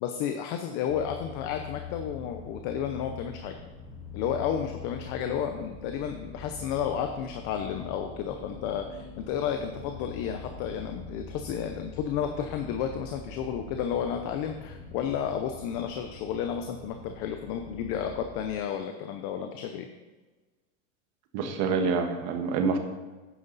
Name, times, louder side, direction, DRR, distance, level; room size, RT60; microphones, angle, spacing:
voice 1, 0.0-3.6 4.1-19.9, left 8 dB, 40° left, 5 dB, 0.8 m, -32 dB
sound 1, 0.9-18.6, left 4 dB, 15° left, 1.5 m, -44 dB
voice 2, 21.3-22.8, right 5 dB, 45° right, 5 dB, 1.5 m, -26 dB
11.5 x 9.4 x 4.1 m, 1.2 s
supercardioid pair, 165°, 38 cm